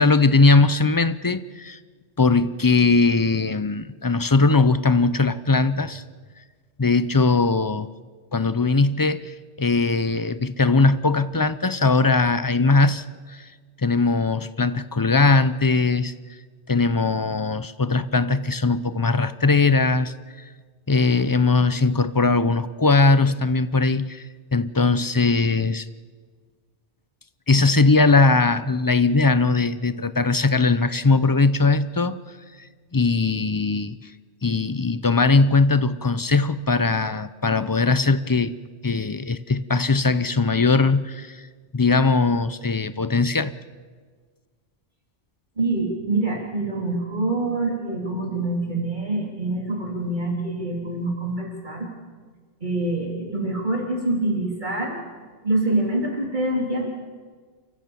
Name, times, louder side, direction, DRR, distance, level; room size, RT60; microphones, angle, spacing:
voice 1, 0.0-1.8 2.2-6.0 6.8-7.9 8.3-13.5 13.8-16.1 16.7-20.1 20.9-24.3 24.5-25.9 27.5-32.2 32.6-32.7 32.9-34.1 34.4-38.5 38.8-41.4 41.7-43.5, left 3 dB, 25° left, 0.5 m, -20 dB
voice 2, 45.6-51.9 52.6-55.0 55.4-56.9, right 2 dB, 40° right, 3.2 m, -25 dB
28.5 x 15.5 x 7.0 m
omnidirectional pair, 1.2 m